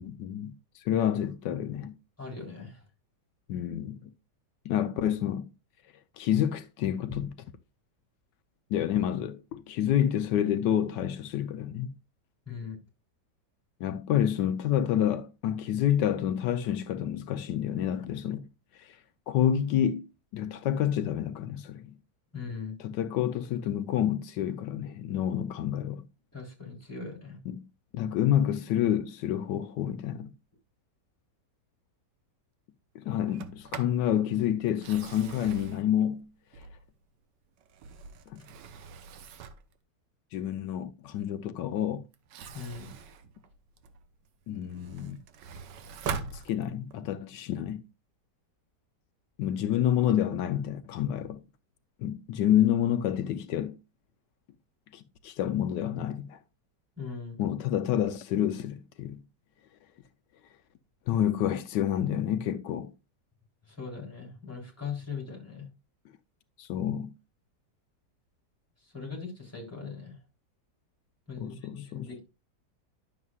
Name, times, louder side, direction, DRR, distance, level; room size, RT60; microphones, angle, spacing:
voice 1, 0.0-1.9 3.5-4.1 4.6-5.5 6.2-7.4 8.7-11.9 13.8-18.4 18.8-19.0 19.3-21.9 22.8-26.0 27.5-27.6 27.9-30.3 32.9-36.3 38.3-38.4 40.3-42.0 44.5-45.2 46.0-47.8 49.4-51.4 52.0-53.7 54.9-56.4 57.4-59.2 61.1-62.9 66.6-67.1 71.4-72.2, left 10 dB, 85° left, 1.3 m, -28 dB
voice 2, 2.2-2.8 12.5-12.8 22.3-22.8 26.3-27.4 42.5-42.9 47.0-47.1 57.0-57.4 63.7-65.7 68.8-70.2 71.3-72.2, left 5 dB, 10° left, 3.6 m, -40 dB
Sliding door, 33.2-34.0 34.7-37.0 37.6-39.7 42.1-44.1 44.5-47.0, right 6 dB, 85° right, 1.5 m, -42 dB
11.0 x 7.4 x 2.3 m
omnidirectional pair, 1.8 m